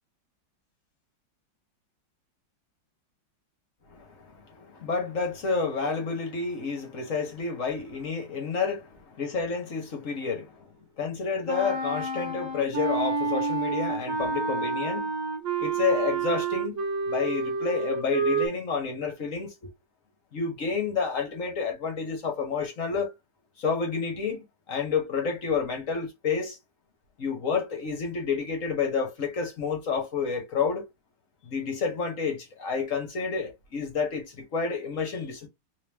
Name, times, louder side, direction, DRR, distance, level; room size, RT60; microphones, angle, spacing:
voice 1, 3.9-10.7 11.0-15.1 15.6-16.8 17.1-19.5 20.3-23.1 23.6-26.6 27.2-30.9 31.4-35.5, left 5 dB, 45° left, 1.3 m, -30 dB
Wind instrument woodwind instrument, 11.4-18.5, right 4 dB, 45° right, 1.5 m, -29 dB
3.4 x 2.9 x 3.4 m
omnidirectional pair, 2.1 m